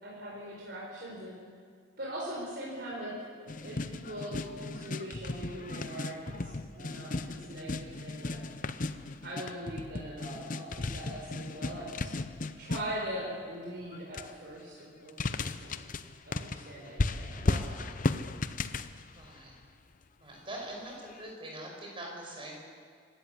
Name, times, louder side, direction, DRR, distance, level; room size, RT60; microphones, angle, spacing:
voice 1, 0.0-1.4 2.0-8.7 9.2-12.1 12.6-15.9 16.2-17.8, equal, 55° right, -4 dB, 4.6 m, -41 dB
sound 1, 3.5-13.2 13.9-14.3 15.1-19.7 21.2-21.3, left 3 dB, 45° left, 0.7 m, -36 dB
voice 2, 17.3-17.9 19.0-19.5 20.2-22.5, right 1 dB, 25° right, -1 dB, 5.6 m, -43 dB
26.0 x 13.0 x 8.1 m, 2.1 s
head